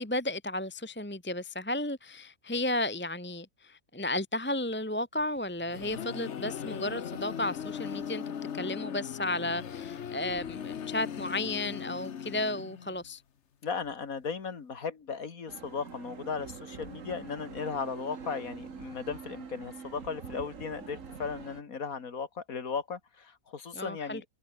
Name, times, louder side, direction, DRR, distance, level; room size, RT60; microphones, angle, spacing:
voice 1, 0.0-8.2 8.5-13.2 23.7-24.2, left 1 dB, 10° left, 1.4 m, -33 dB
sound 1, 5.4-13.1, left 8 dB, 55° left, 1.3 m, -39 dB
voice 2, 13.6-24.2, left 5 dB, 85° left, 2.4 m, -36 dB
sound 2, 15.5-21.6, right 6 dB, 65° right, 2.1 m, -45 dB
omnidirectional pair, 1.4 m